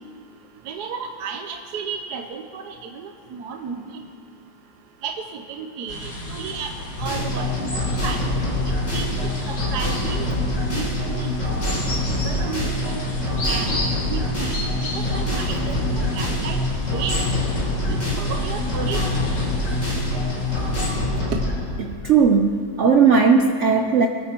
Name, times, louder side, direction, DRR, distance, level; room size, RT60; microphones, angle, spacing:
voice 1, 0.6-4.0 5.0-6.7 7.0-8.2 8.9-9.1 9.5-10.3 10.7-11.3 12.2-13.0 13.5-13.8 14.1-14.6 14.9-16.6 16.9-17.2 17.9-19.1 21.3-21.4, right 6 dB, 60° right, 4 dB, 1.3 m, -32 dB
sound 1, 5.9-20.9, left 1 dB, 55° left, 2.4 m, -33 dB
sound 2, 7.0-21.5, left 1 dB, 40° left, 4.4 m, -25 dB
voice 2, 21.8-24.1, right 5 dB, 90° right, 5 dB, 0.6 m, -17 dB
25.0 x 9.9 x 4.5 m, 2.3 s
omnidirectional pair, 2.1 m